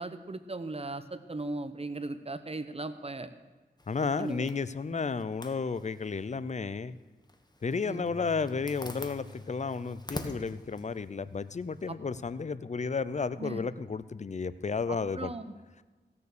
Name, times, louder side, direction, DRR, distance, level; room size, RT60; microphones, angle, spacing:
voice 1, 0.0-3.3 4.2-4.5 7.8-8.0 13.4-13.6 14.9-15.5, right 2 dB, 35° right, 11 dB, 0.9 m, -37 dB
Zipper (clothing), 3.8-11.9, left 1 dB, 25° left, 1.3 m, -47 dB
voice 2, 3.9-7.0 7.6-15.3, left 5 dB, 40° left, 16 dB, 0.5 m, -32 dB
Bass guitar, 8.0-14.3, left 3 dB, 70° left, 1.7 m, -52 dB
15.5 x 6.9 x 6.8 m, 1.3 s
cardioid pair, 45°, 18 cm